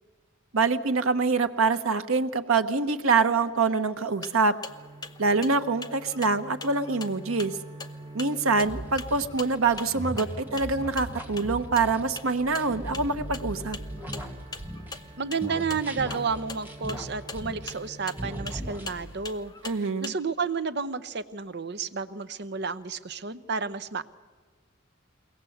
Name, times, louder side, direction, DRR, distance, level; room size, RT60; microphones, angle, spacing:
voice 1, 0.5-4.6 5.2-7.6 8.1-13.8 19.6-20.1, right 4 dB, 90° right, 8 dB, 1.0 m, -25 dB
sound 1, 4.0-20.1, left 4 dB, 20° left, 0.8 m, -43 dB
sound 2, 4.7-18.5, right 2 dB, 25° right, 2.0 m, -47 dB
sound 3, 8.6-15.1 15.4-17.9 18.2-19.2, equal, 10° right, 2.0 m, -38 dB
voice 2, 15.2-19.5 19.8-24.0, right 5 dB, 55° right, 12 dB, 0.7 m, -31 dB
22.5 x 18.0 x 7.9 m, 1.5 s
head